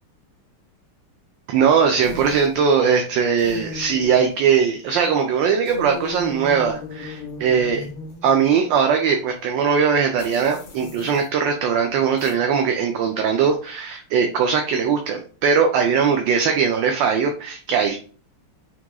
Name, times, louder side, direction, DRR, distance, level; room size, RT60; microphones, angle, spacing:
voice 1, 1.5-7.8 8.2-18.0, right 6 dB, 70° right, 4 dB, 1.2 m, -20 dB
sound 1, 2.0-2.6 3.4-4.3 5.7-8.6 10.2-11.3 12.2-12.3, left 3 dB, 85° left, 2.1 m, -36 dB
5.9 x 2.9 x 2.3 m, 0.39 s
omnidirectional pair, 2.4 m